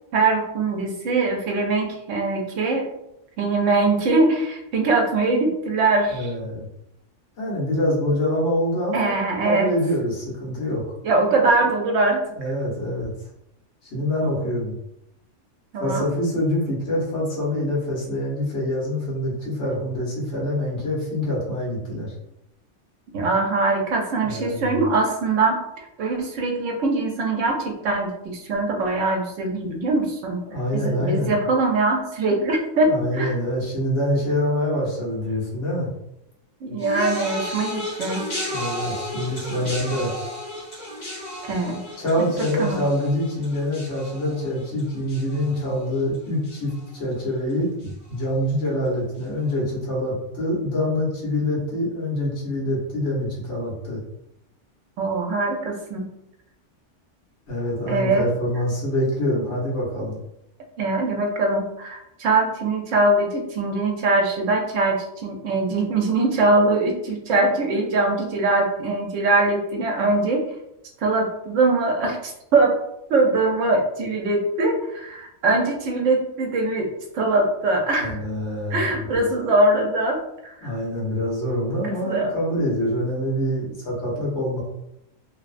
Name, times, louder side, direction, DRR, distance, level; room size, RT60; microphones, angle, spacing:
voice 1, 0.1-2.9 3.4-6.3 8.9-9.7 11.0-12.2 15.7-16.1 23.1-30.4 30.7-33.4 36.6-38.2 41.4-41.8 42.2-42.3 42.6-42.8 55.0-56.1 57.9-58.3 60.8-70.4 71.0-72.7 73.1-78.2 78.7-80.7 81.7-82.3, right 2 dB, 85° right, 2 dB, 1.0 m, -22 dB
voice 2, 6.1-6.7 7.4-9.1 9.4-10.8 12.4-13.1 13.8-14.8 15.8-22.1 24.2-24.8 30.5-31.3 32.8-35.9 38.5-40.1 42.0-47.7 48.1-54.0 57.5-60.2 78.0-78.9 80.6-84.6, left 1 dB, 65° left, -6 dB, 1.3 m, -25 dB
sound 1, 36.8-46.2 46.4-47.0 47.8-47.9, left 1 dB, 85° left, 1.4 m, -33 dB
2.9 x 2.0 x 2.4 m, 0.83 s
omnidirectional pair, 1.2 m